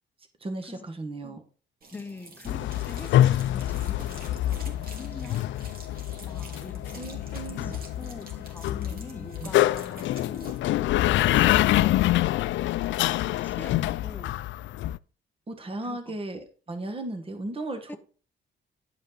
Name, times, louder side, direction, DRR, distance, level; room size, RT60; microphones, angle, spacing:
voice 1, 0.4-1.4 6.9-7.7 9.4-9.5 15.5-18.0, right 2 dB, 30° right, 7 dB, 1.5 m, -36 dB
sound 1, 1.8-10.6, right 3 dB, 45° right, 2.7 m, -48 dB
voice 2, 1.9-5.5 6.2-10.6 13.4-14.4 15.8-16.2 17.9-18.0, left 3 dB, 10° left, 6 dB, 0.8 m, -44 dB
sound 2, 2.5-15.0, left 14 dB, 70° left, 0.4 m, -26 dB
11.0 x 5.2 x 4.1 m, 0.39 s
cardioid pair, 90°, 20 cm